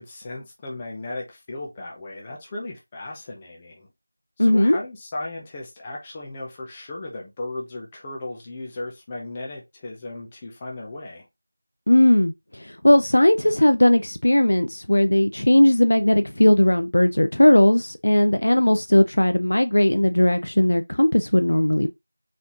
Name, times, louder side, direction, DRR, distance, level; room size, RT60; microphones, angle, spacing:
voice 1, 0.0-3.9 4.4-11.3, left 2 dB, 10° left, 0.7 m, -36 dB
voice 2, 4.4-4.8 11.9-22.0, left 1 dB, 75° left, 0.5 m, -18 dB
4.2 x 3.7 x 3.0 m
figure-of-eight pair, 175°, 0 cm